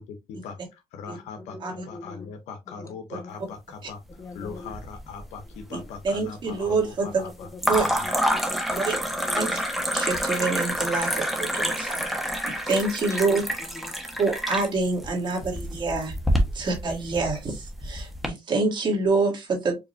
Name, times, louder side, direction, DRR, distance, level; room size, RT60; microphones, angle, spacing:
voice 1, 0.0-4.0 4.3-8.1, left 5 dB, 90° left, 0.7 m, -40 dB
voice 2, 1.4-2.3 2.7-3.5 4.2-4.7 7.0-9.5 13.0-13.4 13.7-14.2 16.3-16.7, left 3 dB, 25° left, 1.1 m, -43 dB
sound 1, 4.4-5.2 5.5-6.1 7.6-18.3, equal, ahead, 1.1 m, -28 dB
voice 3, 5.7-7.2 7.7-7.9 8.8-9.0 9.3-9.6 9.9-12.1 12.5-13.4 14.2-16.1 16.5-19.8, right 3 dB, 45° right, 1.8 m, -26 dB
4.9 x 2.8 x 2.5 m
cardioid pair, 100°, 11 cm